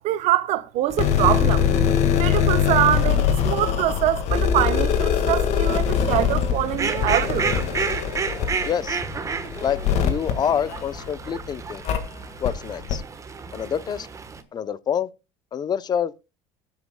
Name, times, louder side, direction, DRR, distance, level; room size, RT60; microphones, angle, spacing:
voice 1, 0.0-1.6 2.1-7.6, right 14 dB, 70° right, 1.0 m, -24 dB
sound 1, 0.9-11.3 11.8-12.0 12.4-12.5 12.9-13.0, left 8 dB, 65° left, 1.7 m, -22 dB
Fowl, 6.6-14.4, right 5 dB, 25° right, 1.1 m, -31 dB
voice 2, 8.6-9.0 9.6-11.8 12.4-13.0 13.5-14.1 14.5-15.1 15.5-16.1, left 8 dB, 35° left, 0.6 m, -26 dB
22.5 x 8.2 x 2.2 m
cardioid pair, 120°, 12 cm